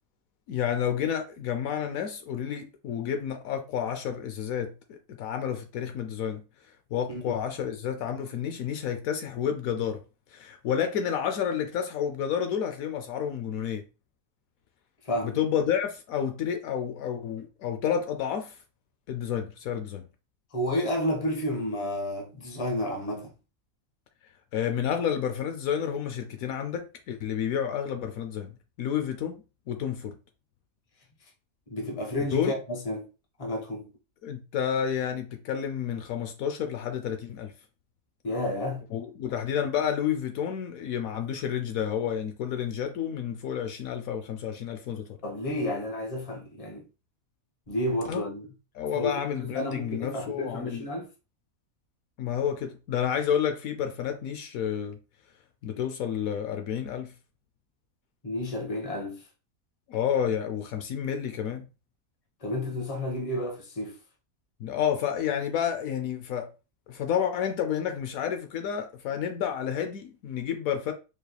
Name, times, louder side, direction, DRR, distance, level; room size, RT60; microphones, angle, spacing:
voice 1, 0.5-6.4 6.9-10.0 10.3-13.8 15.2-18.6 19.1-20.1 24.5-30.2 32.3-32.5 34.2-37.5 38.9-45.2 48.1-48.3 48.7-50.9 52.2-55.0 55.6-57.1 59.9-61.7 64.6-66.5 66.9-70.9, left 8 dB, 75° left, 1.0 m, -30 dB
voice 2, 15.0-15.4 20.5-23.3 31.7-33.1 33.4-33.9 38.2-38.8 45.2-46.8 47.7-48.5 48.9-49.1 49.4-51.1 58.2-59.2 62.4-63.9, left 1 dB, 25° left, 1.0 m, -31 dB
4.9 x 3.2 x 2.2 m
omnidirectional pair, 1.5 m